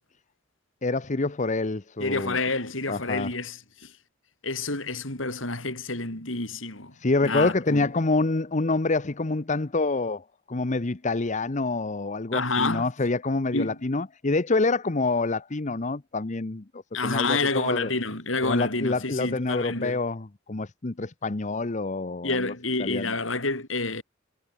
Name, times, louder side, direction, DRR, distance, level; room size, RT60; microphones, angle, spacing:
voice 1, 0.8-2.4 2.9-3.3 7.0-17.9 18.4-22.5 22.8-23.1, left 3 dB, 40° left, 0.9 m, -27 dB
voice 2, 2.0-3.9 4.4-6.9 7.2-7.9 12.3-12.9 13.5-13.8 16.9-20.0 22.2-24.0, left 3 dB, 80° left, 7.3 m, -28 dB
head